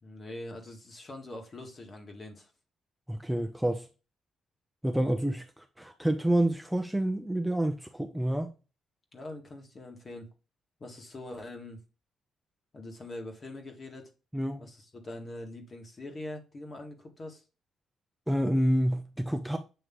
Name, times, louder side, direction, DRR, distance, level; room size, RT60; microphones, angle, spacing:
voice 1, 0.0-2.5 9.1-10.3 10.8-11.8 12.7-14.1 14.6-17.4, left 1 dB, 40° left, 1.8 m, -43 dB
voice 2, 3.1-3.9 4.8-5.5 5.8-8.5 14.3-14.6 18.3-19.6, right 1 dB, 5° right, 0.6 m, -28 dB
7.8 x 3.2 x 3.8 m
cardioid pair, 90°, 0 cm